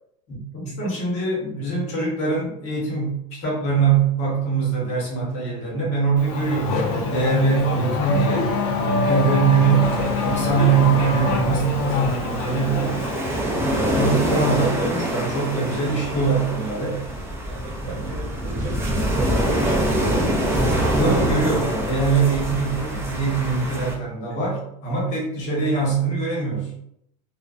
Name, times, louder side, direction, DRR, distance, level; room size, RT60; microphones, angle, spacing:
voice 1, 0.3-8.5 9.0-13.0 13.5-17.0 17.8-18.1 20.7-26.7, right 5 dB, 40° left, -3 dB, 1.0 m, -23 dB
Race car auto racing / Accelerating revving vroom, 6.2-13.4, left 3 dB, 60° left, 0.5 m, -24 dB
sound 1, 9.8-23.9, right 1 dB, 15° right, 0.4 m, -25 dB
voice 2, 17.5-20.3 24.3-24.4, right 4 dB, 85° right, 1 dB, 0.7 m, -36 dB
2.5 x 2.1 x 2.4 m, 0.75 s
supercardioid pair, 145°, 17 cm